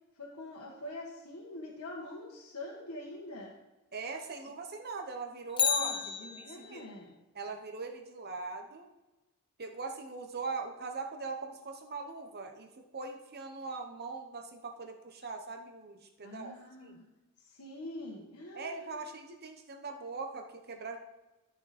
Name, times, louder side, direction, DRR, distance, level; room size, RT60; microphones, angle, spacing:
voice 1, 0.1-3.5 4.5-4.6 5.7-7.2 16.2-17.0 17.4-19.0, left 1 dB, 90° left, -3 dB, 1.4 m, -45 dB
voice 2, 3.9-6.3 6.6-6.8 7.3-8.9 9.6-16.5 16.8-17.0 18.5-21.0, right 4 dB, 45° right, 4 dB, 1.1 m, -41 dB
Bicycle, 5.5-6.9 15.2-15.3, left 8 dB, 25° left, 0.5 m, -32 dB
13.0 x 5.9 x 4.3 m, 1.1 s
head